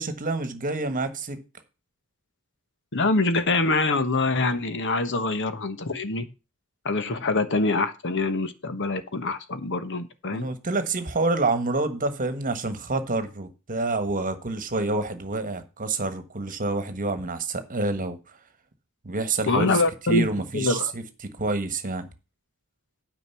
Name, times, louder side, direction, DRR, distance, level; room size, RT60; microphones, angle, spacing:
voice 1, 0.0-1.4 10.3-18.2 19.0-19.8 20.1-21.0 21.4-22.1, right 3 dB, 40° right, 1.4 m, -27 dB
voice 2, 2.9-6.2 6.8-10.5 19.5-20.3 20.5-20.9, left 3 dB, 60° left, 1.2 m, -25 dB
9.4 x 5.2 x 7.0 m
head